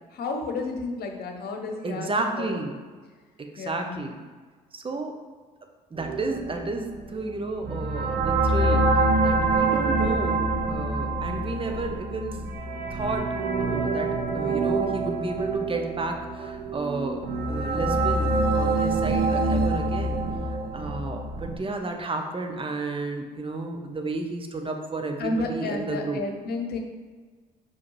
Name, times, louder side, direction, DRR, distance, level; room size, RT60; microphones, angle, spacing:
voice 1, 0.1-2.1 2.4-2.6 3.6-4.0 25.2-26.8, left 3 dB, 50° left, 3 dB, 1.2 m, -31 dB
voice 2, 1.8-2.8 3.4-4.2 4.7-5.1 5.9-12.4 12.9-20.2 20.5-26.2, right 3 dB, 25° right, 4 dB, 1.1 m, -32 dB
sound 1, 6.0-21.6, right 2 dB, 50° right, 1.0 m, -26 dB
5.6 x 5.0 x 4.8 m, 1.4 s
figure-of-eight pair, 50°, 20 cm